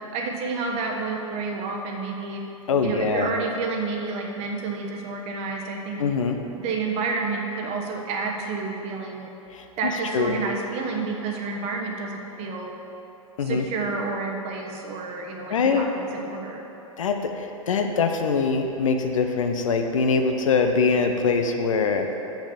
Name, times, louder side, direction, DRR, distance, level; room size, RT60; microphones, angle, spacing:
voice 1, 0.1-2.4 2.8-6.0 6.6-9.3 9.8-12.7 13.4-16.6, right 4 dB, 35° right, 1 dB, 1.2 m, -30 dB
voice 2, 2.7-3.3 6.0-6.4 9.5-9.6 10.1-10.4 13.4-13.6 15.5-15.8 17.0-17.2 17.7-22.1, left 5 dB, 65° left, 5 dB, 0.8 m, -23 dB
6.6 x 5.9 x 7.0 m, 3.0 s
figure-of-eight pair, 100°, 18 cm